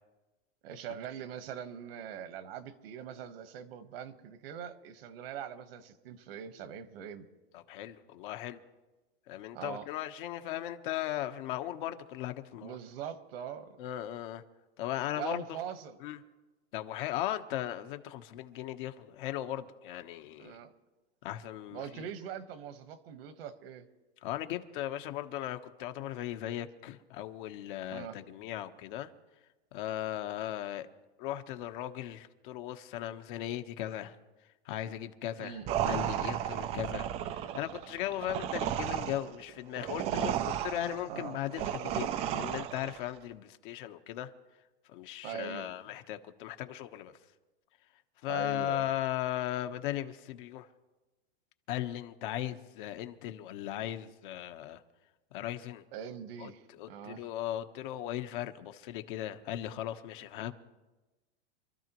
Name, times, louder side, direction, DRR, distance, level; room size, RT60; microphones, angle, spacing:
voice 1, 0.6-7.3 9.5-9.9 12.6-13.8 15.1-16.0 20.4-20.7 21.7-23.9 27.9-28.2 35.4-35.7 41.1-41.4 45.2-45.7 48.3-48.9 55.9-57.3, right 8 dB, 65° right, 10 dB, 1.4 m, -42 dB
voice 2, 7.5-8.6 9.3-12.8 13.8-14.4 14.8-15.6 16.0-16.2 16.7-20.6 21.2-22.1 24.2-29.1 29.7-30.9 31.2-34.2 34.6-44.3 44.9-47.2 48.2-50.7 51.7-54.8 55.3-55.8 56.4-60.5, left 13 dB, 50° left, 8 dB, 1.1 m, -37 dB
sound 1, 35.7-43.0, right 10 dB, 20° right, 0.4 m, -34 dB
26.5 x 13.0 x 3.0 m, 1.1 s
supercardioid pair, 150°, 32 cm